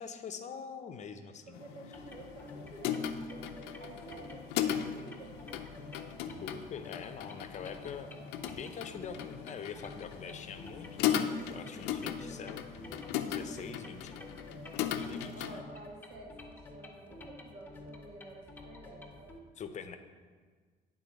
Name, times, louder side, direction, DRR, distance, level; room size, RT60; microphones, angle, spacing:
voice 1, 0.0-1.6 6.4-8.1 8.5-12.6 13.2-14.3 15.0-15.6 19.6-20.0, left 6 dB, 45° left, 8 dB, 0.6 m, -44 dB
voice 2, 1.4-3.5 3.8-5.5 11.5-11.9 15.1-19.3, right 2 dB, 80° right, -2 dB, 1.8 m, -51 dB
sound 1, 1.5-15.6, left 9 dB, 90° left, 0.5 m, -37 dB
sound 2, 1.9-19.4, left 2 dB, 10° left, 0.9 m, -50 dB
9.8 x 3.8 x 5.1 m, 1.5 s
cardioid pair, 110°, 17 cm